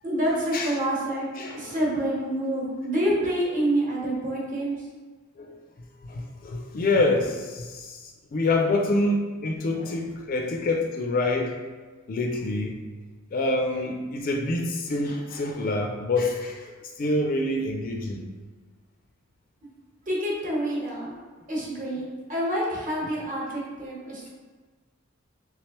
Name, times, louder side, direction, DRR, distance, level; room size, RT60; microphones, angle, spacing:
voice 1, 0.0-1.3 1.5-4.8 13.7-13.9 20.1-21.1 21.5-24.3, right 1 dB, 40° right, -5 dB, 1.1 m, -27 dB
voice 2, 1.4-1.8 5.4-5.5 6.1-8.0 8.3-11.5 12.1-12.8 13.3-16.7 17.0-18.2, left 2 dB, 45° left, 1 dB, 0.4 m, -26 dB
3.6 x 3.2 x 2.9 m, 1.4 s
head